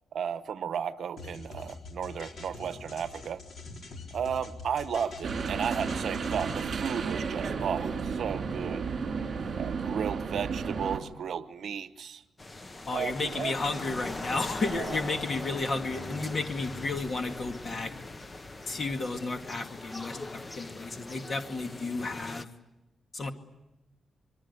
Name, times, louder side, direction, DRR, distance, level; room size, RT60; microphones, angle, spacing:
voice 1, 0.1-3.4 4.1-8.9 9.6-12.2 12.9-13.5 14.7-15.0, right 7 dB, 70° right, 0.9 m, -34 dB
sound 1, 1.2-6.7, left 3 dB, 60° left, 4.0 m, -44 dB
sound 2, 5.2-11.0, right 5 dB, 50° right, 3.2 m, -32 dB
sound 3, 12.4-22.4, left 2 dB, 20° left, 1.0 m, -41 dB
voice 2, 12.9-17.9 18.7-22.5 23.1-23.3, left 3 dB, 40° left, 2.1 m, -32 dB
25.5 x 23.0 x 8.4 m
wide cardioid pair, 145°, 0 cm